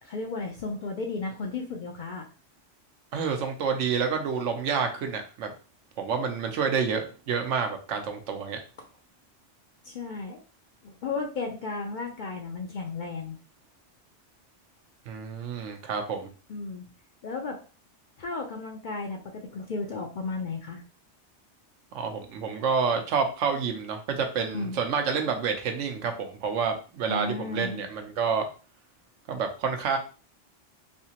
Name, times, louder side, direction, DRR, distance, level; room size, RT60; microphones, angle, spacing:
voice 1, 0.0-2.3 9.8-10.4 10.8-13.4 16.5-16.9 17.2-17.6 18.2-20.8 24.5-24.8 27.1-27.9, left 3 dB, 60° left, 1 dB, 0.5 m, -34 dB
voice 2, 3.1-5.5 6.0-8.6 15.1-16.3 21.9-28.5 29.3-30.0, right 6 dB, 85° right, 5 dB, 1.0 m, -28 dB
3.4 x 2.8 x 2.8 m, 0.37 s
omnidirectional pair, 1.2 m